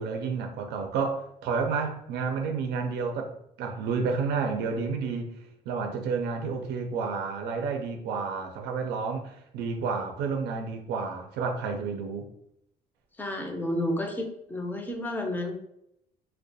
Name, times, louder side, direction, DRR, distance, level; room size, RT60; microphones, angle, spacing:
voice 1, 0.0-3.3 3.6-5.3 5.7-12.3, right 5 dB, 80° right, 3 dB, 0.4 m, -30 dB
voice 2, 13.2-15.5, left 1 dB, 10° left, 3 dB, 0.5 m, -31 dB
2.3 x 2.1 x 2.6 m, 0.76 s
cardioid pair, 110°, 17 cm